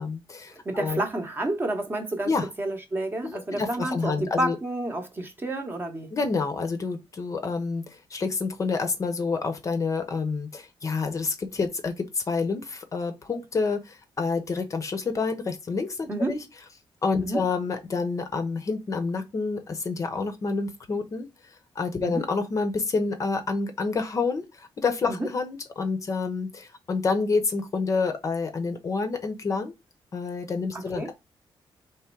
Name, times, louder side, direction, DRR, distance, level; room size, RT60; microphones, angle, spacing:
voice 1, 0.0-1.0 2.2-2.5 3.2-4.6 6.1-16.4 17.0-21.3 21.8-29.7 30.1-31.1, left 4 dB, 35° left, 0.7 m, -28 dB
voice 2, 0.6-2.3 2.6-6.1 16.1-16.3 17.2-17.4 22.0-22.2 25.2-25.3 30.7-31.1, right 1 dB, 20° right, 0.9 m, -29 dB
3.5 x 3.1 x 4.4 m
wide cardioid pair, 165°, 9 cm